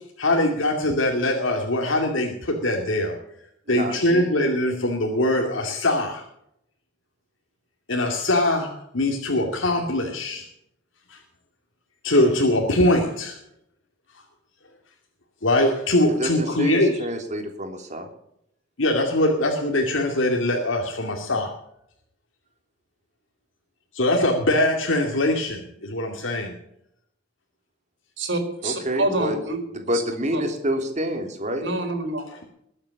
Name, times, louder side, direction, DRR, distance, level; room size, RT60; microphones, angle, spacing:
voice 1, 0.2-3.2 3.7-6.2 7.9-10.5 11.1-11.2 12.0-13.4 15.4-17.1 18.8-21.5 23.9-26.5, left 1 dB, 80° left, 2 dB, 2.4 m, -22 dB
voice 2, 3.7-4.2 16.2-18.1 28.6-29.3 29.9-31.6, equal, 35° right, 4 dB, 3.3 m, -28 dB
voice 3, 28.2-29.6 29.9-30.0 30.3-30.4 31.6-32.2, right 2 dB, 65° right, 5 dB, 4.4 m, -26 dB
21.5 x 8.8 x 7.1 m, 0.76 s
head